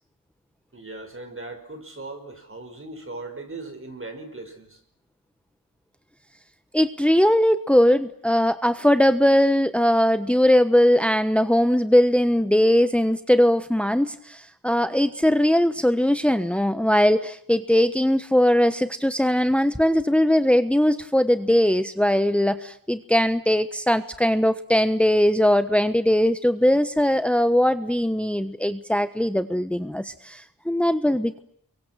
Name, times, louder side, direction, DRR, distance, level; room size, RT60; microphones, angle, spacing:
voice 1, 0.7-4.8, right 2 dB, 40° right, 6 dB, 5.4 m, -38 dB
voice 2, 6.7-31.4, equal, 5° left, 11 dB, 1.2 m, -20 dB
29.5 x 24.0 x 7.6 m, 0.67 s
wide cardioid pair, 85°, 33 cm